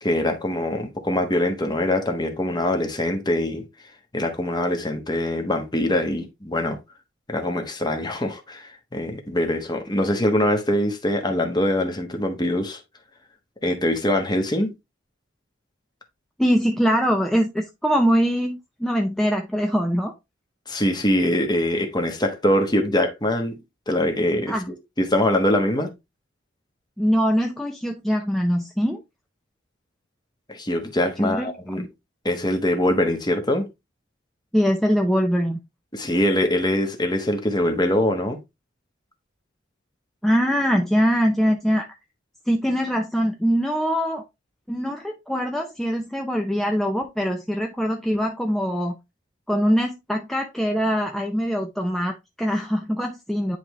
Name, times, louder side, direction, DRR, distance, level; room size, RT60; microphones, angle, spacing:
voice 1, 0.0-3.7 4.1-6.8 7.3-12.8 13.6-14.7 20.7-23.6 23.9-24.6 25.0-25.9 30.5-31.8 32.2-33.7 35.9-38.4, left 1 dB, 20° left, 1.2 m, -23 dB
voice 2, 16.4-20.1 24.5-24.6 27.0-29.0 31.2-31.9 34.5-35.6 40.2-41.9 42.5-44.2 44.7-49.0 49.5-53.6, equal, ahead, 0.5 m, -23 dB
10.0 x 3.5 x 3.0 m
head